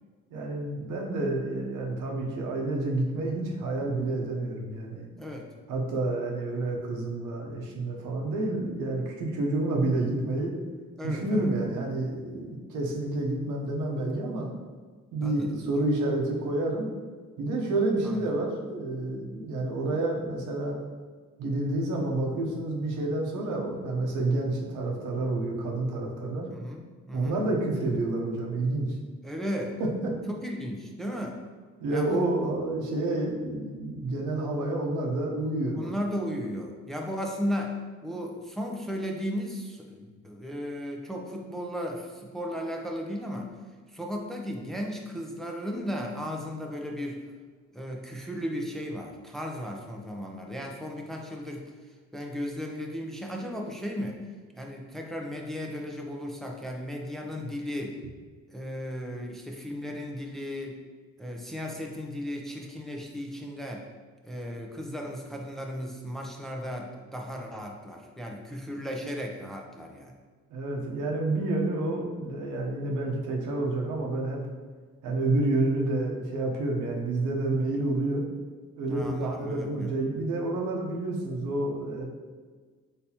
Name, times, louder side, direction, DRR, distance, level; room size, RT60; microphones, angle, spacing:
voice 1, 0.3-5.1 5.7-10.5 11.0-14.5 15.1-16.9 17.4-20.8 21.4-26.5 27.1-28.9 29.8-30.1 31.8-35.9 70.5-74.4 75.0-78.2 78.8-82.0, right 2 dB, 90° right, 0 dB, 0.8 m, -29 dB
voice 2, 11.0-11.5 15.2-15.6 18.0-18.3 26.5-27.4 29.2-29.7 30.4-31.4 31.9-32.3 35.8-43.5 43.9-47.2 47.7-51.7 52.1-54.2 54.5-58.0 58.5-60.8 61.2-63.8 64.2-70.1 78.9-79.9, equal, ahead, 0 dB, 0.5 m, -35 dB
4.0 x 3.4 x 2.8 m, 1.5 s
cardioid pair, 90°, 30 cm